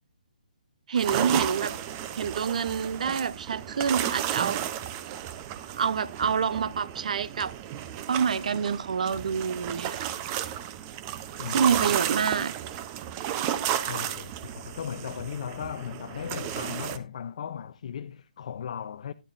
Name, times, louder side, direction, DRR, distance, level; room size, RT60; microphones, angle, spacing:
voice 1, 0.9-1.7 2.2-4.6 5.7-7.5 8.1-10.1 11.5-12.5 13.3-13.4, right 6 dB, 55° right, 0.8 m, -27 dB
sound 1, 1.0-17.0, right 11 dB, 20° right, 0.7 m, -33 dB
voice 2, 11.4-11.8 12.2-12.3 13.8-19.1, left 8 dB, 50° left, 0.6 m, -37 dB
12.0 x 12.0 x 2.6 m
hypercardioid pair, 160°, 5 cm